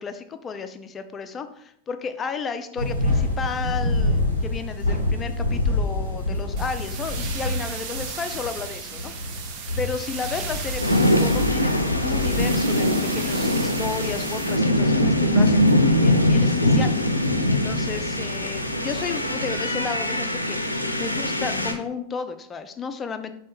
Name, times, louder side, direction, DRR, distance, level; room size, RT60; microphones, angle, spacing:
voice 1, 0.0-9.1 9.8-11.7 12.0-16.9 17.5-23.3, left 5 dB, 20° left, 9 dB, 0.4 m, -33 dB
sound 1, 2.8-19.7, left 2 dB, 85° right, 1.0 m, -29 dB
sound 2, 6.6-14.6, right 6 dB, 45° right, 0.6 m, -36 dB
sound 3, 10.8-21.7, left 1 dB, 85° left, 0.4 m, -22 dB
5.1 x 2.2 x 3.5 m, 0.71 s
figure-of-eight pair, 90°, 0 cm